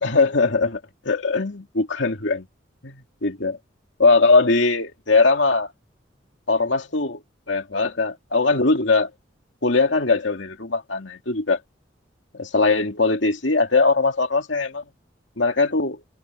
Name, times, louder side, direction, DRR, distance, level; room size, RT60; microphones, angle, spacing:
voice 1, 0.0-2.5 2.8-3.6 4.0-5.7 6.5-7.2 7.5-9.1 9.6-11.6 12.3-14.8 15.4-16.0, left 3 dB, 75° left, 2.6 m, -20 dB
head